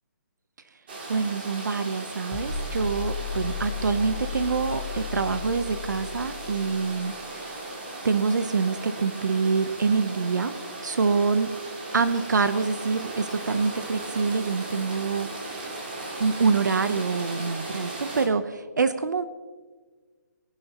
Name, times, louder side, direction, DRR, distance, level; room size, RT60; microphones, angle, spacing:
sound 1, 0.9-18.3, right 2 dB, 35° right, 2.9 m, -37 dB
voice 1, 1.1-7.6 8.0-10.5 10.8-11.5 11.9-15.7 16.2-19.2, right 4 dB, 80° right, 11 dB, 0.9 m, -26 dB
sound 2, 2.3-7.3, left 6 dB, 10° left, 0.8 m, -35 dB
20.0 x 11.0 x 3.0 m, 1.4 s
hypercardioid pair, 175°, 10 cm